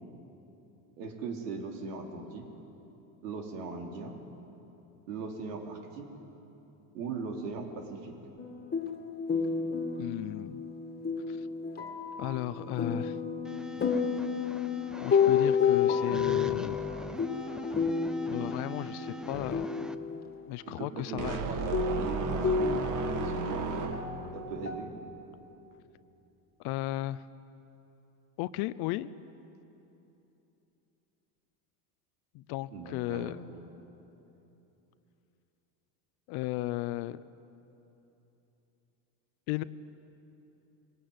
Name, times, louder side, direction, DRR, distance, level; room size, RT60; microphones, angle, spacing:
voice 1, 1.0-2.5 3.2-4.2 5.1-6.1 6.9-8.1 20.7-22.8 23.2-23.9 24.3-24.9 32.7-33.6, right 4 dB, 90° right, 2 dB, 3.6 m, -39 dB
Night relax - piano mood atmo, 8.4-20.4 21.2-21.3 21.7-24.8, left 6 dB, 20° left, 2.2 m, -31 dB
voice 2, 10.0-10.6 11.3-11.4 12.2-13.2 15.0-16.8 18.3-19.7 20.5-21.4 26.6-27.2 28.4-29.1 32.3-33.4 36.3-37.2 39.5-39.6, left 16 dB, 55° left, 16 dB, 0.7 m, -35 dB
sound 1, 13.4-19.9, right 1 dB, ahead, 0.5 m, -42 dB
sound 2, 21.2-24.4, right 4 dB, 40° right, 2.0 m, -33 dB
23.0 x 19.0 x 9.5 m, 3.0 s
supercardioid pair, 120°, 46 cm